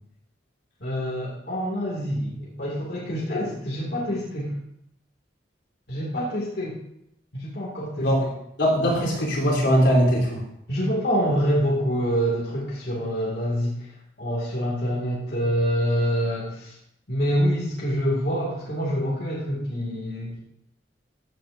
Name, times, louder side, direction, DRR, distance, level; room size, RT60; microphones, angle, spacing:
voice 1, 0.8-4.5 5.9-6.8 7.3-8.3 10.7-13.8 14.2-16.7 17.1-20.4, equal, 60° left, -6 dB, 2.2 m, -26 dB
voice 2, 8.6-10.4, equal, 80° left, -4 dB, 3.6 m, -20 dB
15.0 x 7.6 x 2.6 m, 0.76 s
head